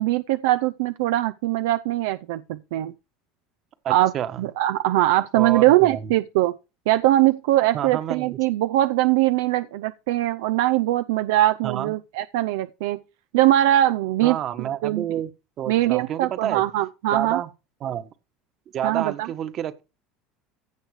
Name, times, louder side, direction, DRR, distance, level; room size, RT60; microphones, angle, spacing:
voice 1, 0.0-2.9 3.9-6.5 6.9-13.0 13.3-15.2 15.7-17.4 18.8-19.3, right 15 dB, 80° right, 0.5 m, -21 dB
voice 2, 3.8-4.4 5.3-6.0 7.7-8.4 11.6-11.9 14.2-15.3 15.6-16.6 17.1-17.5 17.8-18.1 18.7-19.8, right 10 dB, 45° right, 1.4 m, -29 dB
15.5 x 6.5 x 4.9 m
supercardioid pair, 105°, 0 cm